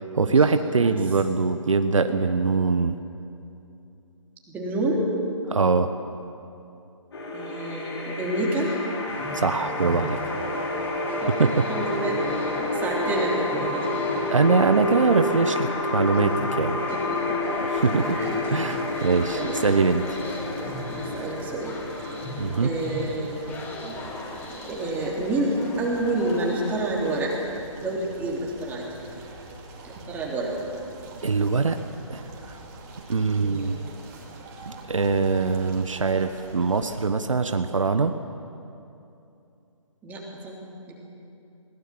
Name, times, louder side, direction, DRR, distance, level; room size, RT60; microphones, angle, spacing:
voice 1, 0.1-3.0 5.5-5.9 9.3-10.2 11.4-11.7 14.3-16.8 17.7-18.2 18.5-20.0 22.4-22.7 31.2-31.8 32.1-32.6 33.1-33.8 34.7-38.1, right 4 dB, 70° right, 9 dB, 1.1 m, -23 dB
voice 2, 4.5-5.1 7.3-8.8 11.2-11.4 11.7-12.2 12.5-14.1 16.9-17.4 17.9-18.4 19.3-19.7 21.0-21.8 22.6-23.5 24.7-27.3 27.8-28.9 29.8-30.5 33.4-33.8 40.0-41.0, right 2 dB, 10° right, -3 dB, 3.1 m, -29 dB
sound 1, 7.1-26.1, left 2 dB, 50° left, 5.3 m, -30 dB
sound 2, 9.1-27.3, left 2 dB, 10° left, 1.6 m, -40 dB
sound 3, 17.7-37.1, right 3 dB, 30° right, 3.2 m, -44 dB
21.5 x 20.0 x 7.5 m, 2.7 s
figure-of-eight pair, 145°, 17 cm